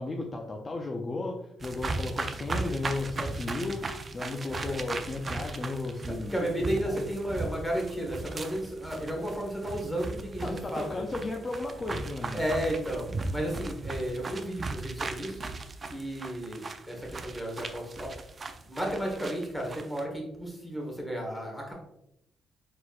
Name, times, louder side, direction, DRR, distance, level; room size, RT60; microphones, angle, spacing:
voice 1, 0.0-7.0 10.4-12.4, left 2 dB, 35° left, 2 dB, 0.5 m, -35 dB
sound 1, 1.6-20.0, right 3 dB, 35° right, 0.4 m, -37 dB
voice 2, 6.3-11.0 12.3-15.4 15.9-18.1 18.6-21.7, right 1 dB, 5° left, 0 dB, 1.5 m, -33 dB
4.4 x 4.1 x 2.4 m, 0.81 s
cardioid pair, 90°, 0 cm